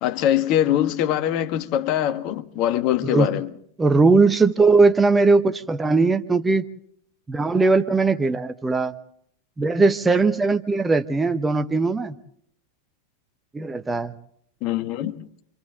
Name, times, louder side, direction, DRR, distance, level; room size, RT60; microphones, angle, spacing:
voice 1, 0.0-3.5 14.6-15.2, left 11 dB, 40° left, 1.5 m, -23 dB
voice 2, 3.8-6.6 7.3-8.9 9.6-12.1 13.5-14.1, right 3 dB, 10° right, 0.9 m, -19 dB
28.5 x 26.0 x 3.8 m
figure-of-eight pair, 90°, 0 cm